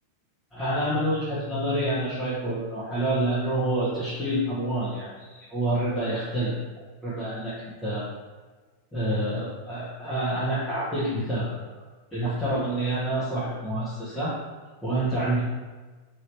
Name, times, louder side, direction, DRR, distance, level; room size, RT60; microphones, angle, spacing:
voice 1, 0.5-6.5 7.0-7.5 7.8-8.0 8.9-11.6 12.1-14.3 14.8-15.4, right 1 dB, 10° left, -12 dB, 0.9 m, -27 dB
3.0 x 2.7 x 3.1 m, 1.3 s
figure-of-eight pair, 90°, 0 cm